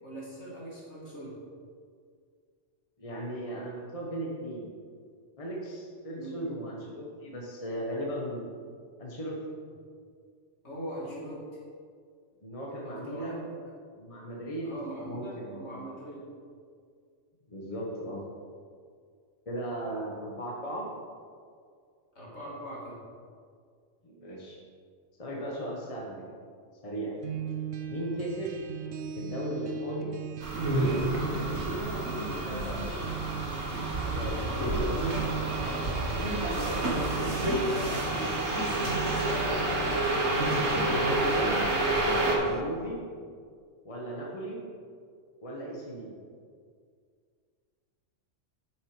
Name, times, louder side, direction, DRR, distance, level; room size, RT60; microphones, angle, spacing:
voice 1, 0.0-1.4 6.2-6.5 10.6-11.4 12.8-13.4 14.6-16.3 22.1-23.0 34.7-35.0 39.3-39.7, equal, 60° left, -6 dB, 2.9 m, -41 dB
voice 2, 3.0-4.7 5.4-8.4 9.0-9.4 12.4-13.5 14.0-15.9 17.5-18.2 19.4-20.8 24.0-24.6 25.2-26.2 26.8-27.1 27.9-28.6 29.1-30.1 30.6-33.1 34.1-35.3 36.3-38.3 40.8-41.7 42.2-43.0 43.8-44.6 45.4-46.1, right 1 dB, 30° left, -3 dB, 1.3 m, -37 dB
sound 1, 27.2-42.6, right 6 dB, 80° right, 1.1 m, -39 dB
sound 2, 30.4-42.4, right 1 dB, 65° right, 1.8 m, -29 dB
9.2 x 6.3 x 5.0 m, 2.1 s
omnidirectional pair, 1.3 m